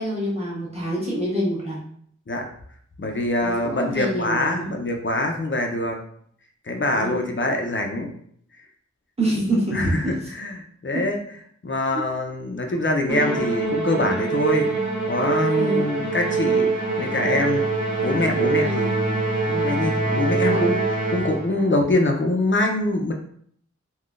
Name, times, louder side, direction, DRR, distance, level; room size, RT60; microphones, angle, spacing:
voice 1, 0.0-1.8 3.4-4.7 6.9-7.3 9.2-9.8 11.9-12.0 15.6-15.8 18.6-18.8 20.5-20.6, right 1 dB, 20° right, -7 dB, 1.3 m, -26 dB
voice 2, 3.0-6.0 6.7-8.1 9.7-11.2 11.6-14.7 15.1-16.7 17.0-17.6 18.0-20.8 21.1-23.1, left 1 dB, 40° left, 2 dB, 0.6 m, -24 dB
Musical instrument, 13.1-21.6, right 3 dB, 85° right, 1.2 m, -24 dB
3.6 x 2.3 x 2.5 m, 0.63 s
wide cardioid pair, 55°, 30 cm